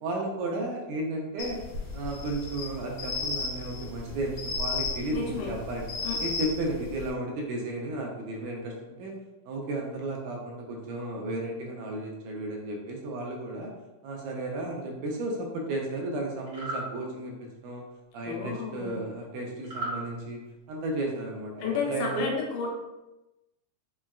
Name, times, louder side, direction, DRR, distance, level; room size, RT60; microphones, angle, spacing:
voice 1, 0.0-1.6 1.9-5.9 6.2-9.2 9.5-13.7 14.0-17.8 18.1-20.4 20.7-22.3, right 2 dB, 80° right, 0 dB, 2.0 m, -33 dB
sound 1, 1.4-7.1, left 4 dB, 65° left, 1.6 m, -34 dB
voice 2, 5.1-5.5 6.0-6.2 18.2-19.0 21.6-22.7, left 5 dB, 80° left, -1 dB, 2.1 m, -32 dB
sound 2, 16.4-16.9 19.6-20.0, right 1 dB, 60° right, 1.1 m, -34 dB
5.5 x 2.3 x 2.3 m, 1.0 s
omnidirectional pair, 3.8 m